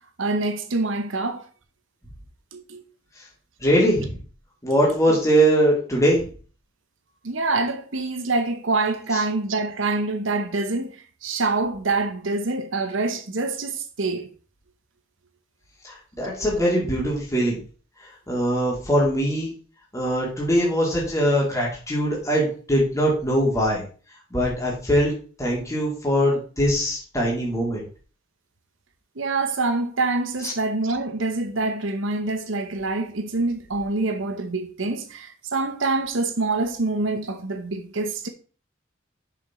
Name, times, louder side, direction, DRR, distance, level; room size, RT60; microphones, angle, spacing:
voice 1, 0.2-1.4 2.5-2.8 7.2-14.3 16.6-16.7 29.2-38.3, right 3 dB, 70° right, 0.9 m, -26 dB
voice 2, 3.6-4.2 4.6-6.2 9.1-9.2 15.8-17.6 18.3-19.5 19.9-23.8 24.3-25.1 25.4-27.8, equal, 15° left, 2.4 m, -22 dB
5.9 x 5.9 x 4.3 m
head